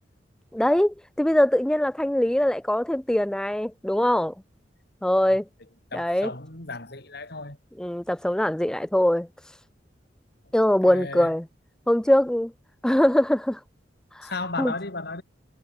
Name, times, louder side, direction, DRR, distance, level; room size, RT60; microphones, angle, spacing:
voice 1, 0.5-4.3 5.0-5.4 5.9-6.3 7.8-9.3 10.5-11.5 11.9-12.5 12.8-13.6 14.2-14.3 14.6-14.7, left 1 dB, 5° left, 0.3 m, -22 dB
voice 2, 5.9-7.6 10.9-11.3 14.2-15.2, left 3 dB, 65° left, 5.4 m, -34 dB
head